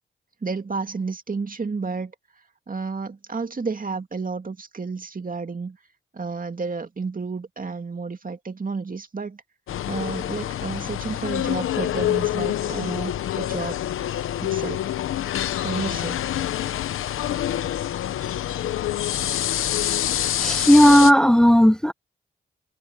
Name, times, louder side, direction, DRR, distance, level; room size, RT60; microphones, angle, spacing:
voice 1, 0.4-2.1 2.7-5.8 6.1-9.4 9.9-13.8 14.4-14.8 15.6-16.5, right 4 dB, 40° right, 2.4 m, -31 dB
sound 1, 9.7-21.1, left 12 dB, 90° left, 0.8 m, -26 dB
voice 2, 20.4-21.9, equal, 5° left, 0.7 m, -14 dB
cardioid pair, 50°, 21 cm